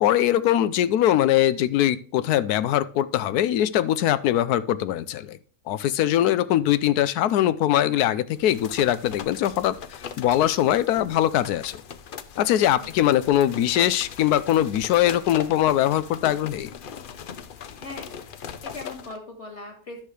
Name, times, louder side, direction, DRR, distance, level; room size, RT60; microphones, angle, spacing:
voice 1, 0.0-5.4 5.7-9.7 10.2-11.8 12.4-16.7, left 12 dB, 85° left, 15 dB, 1.1 m, -22 dB
sound 1, 8.4-19.2, left 7 dB, 65° left, 0.5 m, -39 dB
voice 2, 12.8-13.2 17.7-20.0, left 2 dB, 45° left, 3 dB, 2.5 m, -41 dB
10.0 x 6.5 x 3.2 m, 0.43 s
omnidirectional pair, 1.6 m